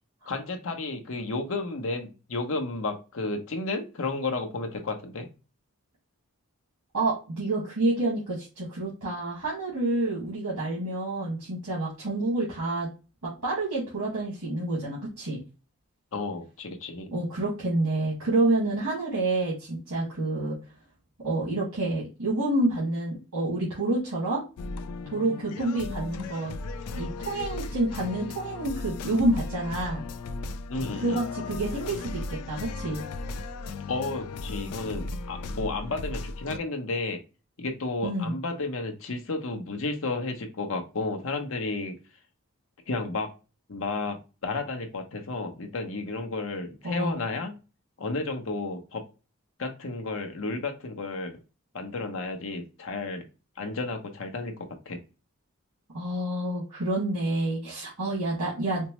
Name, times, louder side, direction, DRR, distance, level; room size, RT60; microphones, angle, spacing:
voice 1, 0.3-5.3 16.1-17.1 30.7-31.2 33.9-37.2 37.6-42.0 42.9-43.3 43.7-47.5 48.0-49.0 49.6-51.4 51.7-53.2 53.6-55.0, left 3 dB, 60° left, 5 dB, 0.8 m, -32 dB
voice 2, 6.9-12.9 13.2-15.4 17.1-20.6 21.2-24.4 25.1-26.5 26.9-30.0 31.0-33.0 38.0-38.3 46.8-47.2 55.9-58.9, right 2 dB, 85° right, -7 dB, 1.6 m, -28 dB
sound 1, 24.6-36.6, left 3 dB, 90° left, 0.4 m, -36 dB
4.4 x 2.0 x 2.9 m, 0.30 s
head